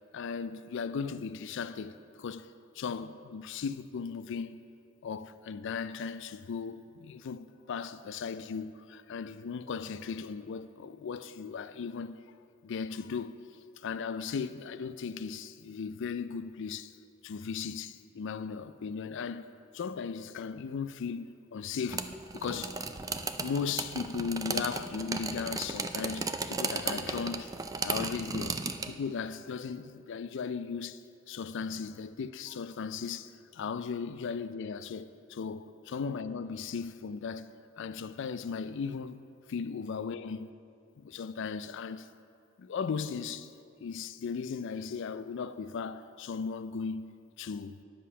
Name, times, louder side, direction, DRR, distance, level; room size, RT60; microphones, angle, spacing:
voice 1, 0.1-4.6 5.0-12.2 12.6-13.4 13.8-16.9 17.2-19.5 19.7-22.8 23.4-27.5 27.8-28.6 28.9-31.0 31.3-39.2 39.5-40.5 41.0-42.1 42.6-43.5 43.8-47.8, left 5 dB, 60° left, 0.4 m, -37 dB
sound 1, 21.9-28.9, right 4 dB, 15° right, 0.3 m, -35 dB
10.0 x 7.5 x 5.6 m
head